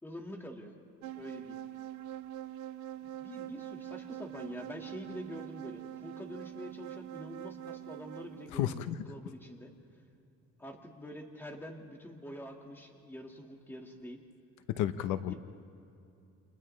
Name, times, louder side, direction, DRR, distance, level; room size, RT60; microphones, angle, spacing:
voice 1, 0.0-0.7 1.2-1.6 3.0-9.7 10.6-14.2 15.3-15.4, equal, 5° left, 2 dB, 1.7 m, -46 dB
sound 1, 1.0-8.5, right 12 dB, 80° right, 0.8 m, -44 dB
voice 2, 8.5-9.0 14.7-15.3, left 11 dB, 85° left, 11 dB, 0.8 m, -32 dB
29.5 x 27.5 x 3.2 m, 2.7 s
cardioid pair, 155°, 30 cm